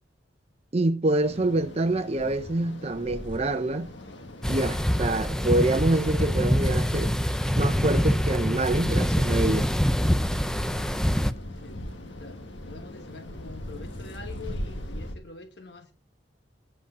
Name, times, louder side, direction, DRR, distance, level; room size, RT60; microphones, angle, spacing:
voice 1, 0.7-3.9 4.5-7.1 7.6-9.7, right 2 dB, 35° right, 0.7 m, -26 dB
sound 1, 1.2-15.1, left 1 dB, 80° left, 1.6 m, -40 dB
sound 2, 4.4-11.3, equal, 5° left, 0.5 m, -25 dB
voice 2, 12.6-15.9, left 4 dB, 60° left, 1.2 m, -45 dB
9.0 x 8.1 x 6.7 m
head